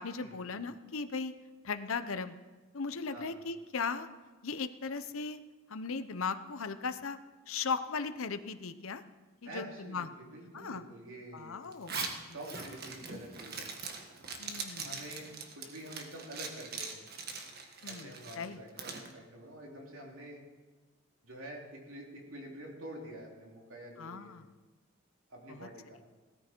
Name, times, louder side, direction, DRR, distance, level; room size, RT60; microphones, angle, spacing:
voice 1, 0.0-1.3 1.6-2.4 2.7-4.1 4.4-5.4 5.7-7.2 7.5-9.0 9.4-10.1 10.5-10.8 11.3-12.0 14.4-15.0 17.8-18.6 24.0-24.4 25.5-25.7, left 5 dB, 75° left, 10 dB, 0.8 m, -37 dB
voice 2, 9.5-11.6 12.2-13.7 14.8-17.1 17.8-20.4 21.2-24.4 25.3-26.0, right 1 dB, 75° right, -1 dB, 3.5 m, -47 dB
Zipper (clothing), 11.7-19.1, right 5 dB, 50° right, 1.6 m, -42 dB
17.0 x 14.0 x 4.6 m, 1.2 s
head